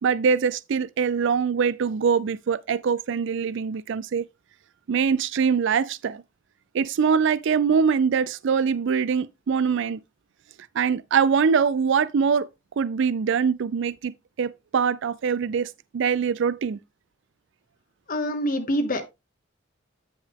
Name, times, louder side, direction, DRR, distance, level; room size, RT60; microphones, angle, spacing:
voice 1, 0.0-4.3 4.9-6.2 6.7-10.0 10.7-12.5 12.8-14.1 14.4-16.8, right 6 dB, 65° right, 0.4 m, -23 dB
voice 2, 18.1-19.0, equal, 45° left, 1.1 m, -25 dB
9.5 x 5.9 x 3.5 m
head